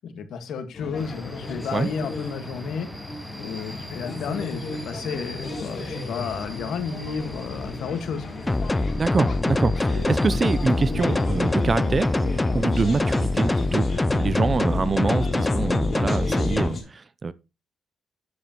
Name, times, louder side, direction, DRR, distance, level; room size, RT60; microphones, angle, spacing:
voice 1, 0.0-2.9 3.4-8.2, left 6 dB, 75° left, 1.6 m, -32 dB
sound 1, 0.7-16.8, left 3 dB, 40° left, 3.1 m, -35 dB
sound 2, 1.0-14.8, equal, ahead, 0.9 m, -42 dB
sound 3, 8.5-16.7, left 2 dB, 15° left, 0.3 m, -24 dB
voice 2, 8.9-12.1 12.5-17.3, right 4 dB, 35° right, 0.6 m, -25 dB
9.6 x 8.1 x 3.0 m
cardioid pair, 90°, 0 cm